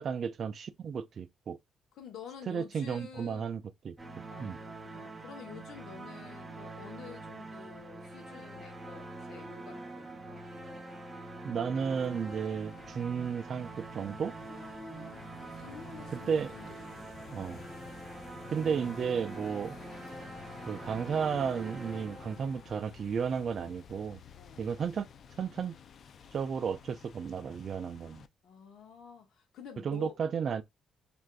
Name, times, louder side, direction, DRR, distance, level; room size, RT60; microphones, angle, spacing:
voice 1, 0.0-1.6 2.5-4.0 4.4-4.6 11.4-14.4 16.1-16.5 17.3-17.6 18.5-19.8 20.7-24.2 24.6-25.1 25.4-25.7 26.3-28.2 29.8-30.6, right 6 dB, 55° right, 0.3 m, -33 dB
voice 2, 1.9-3.5 4.3-10.5 14.4-16.7 17.0-17.6 24.4-24.7 28.4-30.2, left 7 dB, 75° left, 0.9 m, -50 dB
sound 1, 4.0-22.9, right 2 dB, 20° right, 0.7 m, -45 dB
sound 2, 11.8-28.3, left 7 dB, 60° left, 0.3 m, -52 dB
3.3 x 2.5 x 2.3 m
cardioid pair, 90°, 0 cm